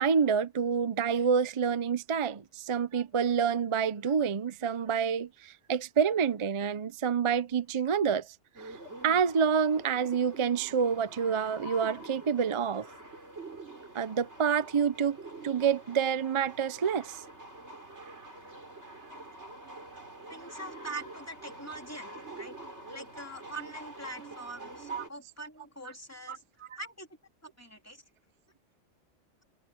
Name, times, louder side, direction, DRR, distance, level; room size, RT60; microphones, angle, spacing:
voice 1, 0.0-8.3 9.0-12.9 13.9-15.2 15.4-17.2 24.9-25.0 26.3-26.4, right 7 dB, 40° right, 0.5 m, -28 dB
sound 1, 8.5-25.1, right 2 dB, 65° right, 4.8 m, -46 dB
voice 2, 20.3-22.6 22.9-26.4 26.8-27.1 27.6-28.0, right 2 dB, 10° left, 2.8 m, -43 dB
omnidirectional pair, 1.2 m